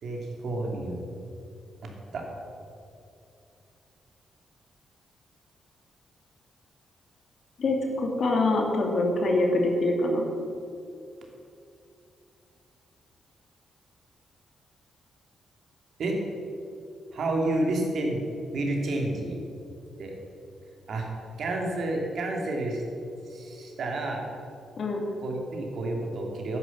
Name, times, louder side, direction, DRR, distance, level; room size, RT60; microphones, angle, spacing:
voice 1, 0.0-1.0 1.8-2.3 16.0-16.2 17.1-18.2 18.5-19.4 20.0-20.2 20.9-21.1 21.4-22.8 23.3-24.2 25.2-26.6, right 2 dB, 70° right, 1 dB, 2.8 m, -30 dB
voice 2, 7.6-10.3 24.8-25.0, left 2 dB, 60° left, 2 dB, 2.5 m, -25 dB
11.0 x 9.7 x 7.3 m, 2.6 s
cardioid pair, 65°, 0 cm